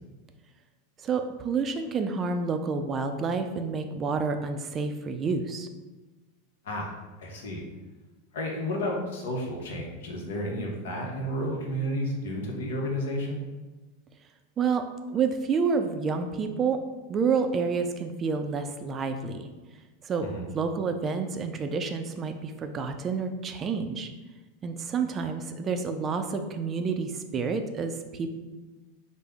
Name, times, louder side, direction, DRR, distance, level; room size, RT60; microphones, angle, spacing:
voice 1, 1.0-5.7 14.6-14.8 15.1-16.8 17.1-19.5 20.0-20.3 20.5-24.1 24.6-28.3, right 5 dB, 30° right, 7 dB, 0.3 m, -29 dB
voice 2, 6.6-7.6 8.3-13.4 20.2-20.4, equal, 80° left, 0 dB, 0.8 m, -32 dB
3.4 x 2.0 x 3.4 m, 1.2 s
hypercardioid pair, 115°, 0 cm